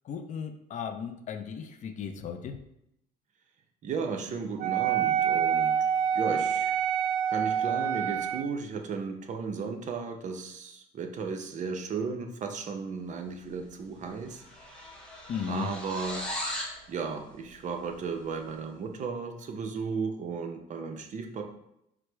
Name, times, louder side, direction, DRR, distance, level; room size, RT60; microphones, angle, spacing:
voice 1, 0.0-2.6 15.3-15.7, left 7 dB, 45° left, 7 dB, 0.4 m, -36 dB
voice 2, 3.8-6.8 7.3-14.4 15.5-16.2 16.9-21.4, right 5 dB, 45° right, 4 dB, 0.6 m, -35 dB
Wind instrument woodwind instrument, 4.6-8.5, right 8 dB, 90° right, 0.4 m, -27 dB
sound 1, 13.6-13.8 14.1-16.8, left 1 dB, 5° left, 0.9 m, -37 dB
4.7 x 2.0 x 4.5 m, 0.79 s
cardioid pair, 110°, 17 cm